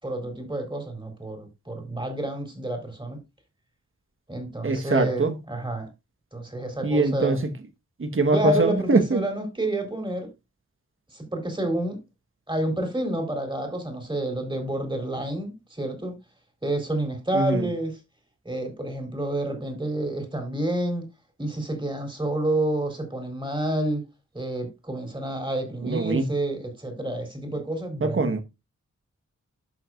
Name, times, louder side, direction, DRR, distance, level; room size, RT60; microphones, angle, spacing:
voice 1, 0.0-3.2 4.3-5.9 6.3-7.4 8.3-10.3 11.1-12.0 12.5-16.2 16.6-18.0 18.5-21.0 21.4-24.0 24.3-28.3, right 1 dB, 15° right, 3.8 m, -29 dB
voice 2, 4.6-5.4 6.8-7.5 8.0-9.2 17.3-17.6 25.8-26.2 28.0-28.4, right 3 dB, 45° right, 1.4 m, -23 dB
12.0 x 6.2 x 2.5 m
wide cardioid pair, 80°, 30 cm